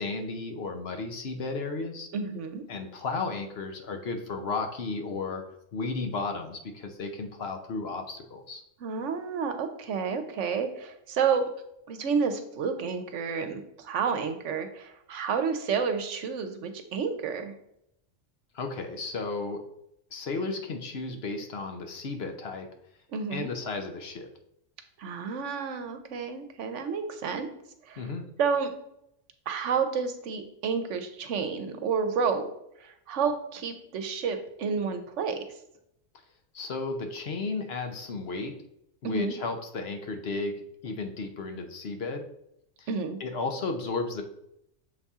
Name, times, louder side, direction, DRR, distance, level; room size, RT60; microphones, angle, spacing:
voice 1, 0.0-2.1 2.7-5.4 5.7-8.6 18.5-19.6 20.1-22.7 23.3-24.3 28.0-28.3 36.5-38.6 39.0-40.6 40.8-42.2 42.8-42.9 43.2-44.2, left 3 dB, 60° left, 5 dB, 1.0 m, -33 dB
voice 2, 2.1-2.6 8.8-11.4 11.9-17.5 23.1-23.5 25.0-27.5 27.9-28.0 28.4-28.7 29.5-32.5 32.8-35.4 39.0-39.3 42.9-43.2, right 6 dB, 70° right, 8 dB, 1.0 m, -30 dB
6.8 x 4.2 x 3.6 m, 0.77 s
omnidirectional pair, 1.3 m